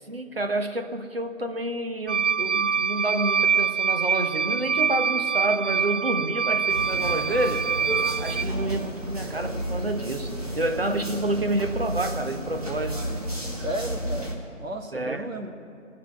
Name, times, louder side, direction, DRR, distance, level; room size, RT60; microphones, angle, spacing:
voice 1, 0.1-7.7 8.2-13.1 14.9-15.4, right 1 dB, 45° right, 7 dB, 1.0 m, -29 dB
sound 1, 2.1-8.4, right 6 dB, 65° right, 0.5 m, -25 dB
sound 2, 6.7-14.3, equal, 30° right, 1.7 m, -32 dB
voice 2, 13.5-15.5, right 1 dB, 80° right, 4 dB, 1.7 m, -34 dB
17.0 x 5.8 x 9.7 m, 2.6 s
figure-of-eight pair, 165°, 39 cm